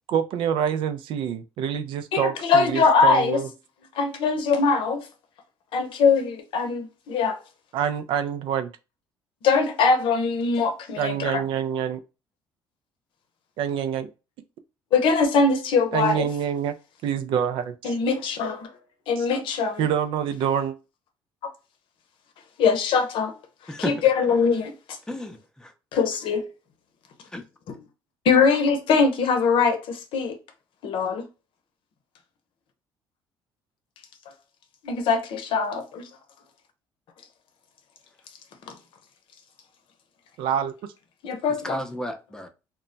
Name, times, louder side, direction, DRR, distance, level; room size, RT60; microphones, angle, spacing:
voice 1, 0.1-3.5 7.7-8.7 11.0-12.0 13.6-14.1 15.9-16.8 17.0-17.9 19.2-19.3 19.8-20.7 40.4-40.7, right 8 dB, 70° right, 0.4 m, -26 dB
voice 2, 2.1-3.4 4.0-5.0 5.7-7.4 9.4-11.4 14.9-16.3 17.8-18.7 19.1-19.8 22.6-23.3 23.8-24.7 25.9-26.5 27.7-27.8 28.2-30.4 30.8-31.2 34.8-36.0 41.2-41.8, left 5 dB, 65° left, 0.7 m, -22 dB
voice 3, 25.1-25.7 27.3-27.4 41.6-42.5, left 1 dB, 5° left, 0.6 m, -32 dB
2.2 x 2.1 x 3.8 m
supercardioid pair, 80°, 9 cm